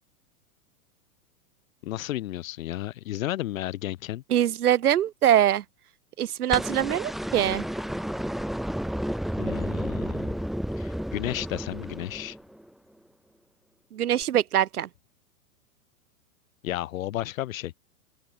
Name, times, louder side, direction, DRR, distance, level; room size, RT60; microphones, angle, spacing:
voice 1, 1.8-4.2 9.4-10.4 10.8-12.4 16.6-17.7, left 14 dB, 60° left, 1.3 m, -33 dB
voice 2, 4.3-5.6 6.2-7.6 13.9-14.9, right 11 dB, 85° right, 1.6 m, -23 dB
sound 1, 6.5-12.7 14.2-14.3, equal, ahead, 1.3 m, -31 dB
hypercardioid pair, 145°, 44 cm